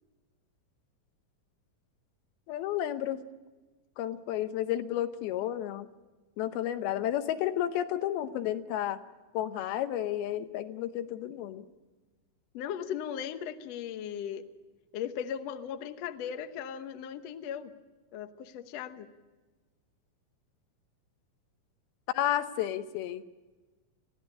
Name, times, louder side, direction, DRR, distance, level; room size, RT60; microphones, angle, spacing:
voice 1, 2.5-3.2 4.0-5.9 6.4-9.0 9.3-11.6 22.1-23.2, left 12 dB, 90° left, 10 dB, 2.9 m, -32 dB
voice 2, 12.5-14.4 14.9-17.7 18.1-19.1, left 8 dB, 65° left, 8 dB, 1.7 m, -37 dB
22.0 x 15.0 x 9.8 m, 1.2 s
omnidirectional pair, 4.3 m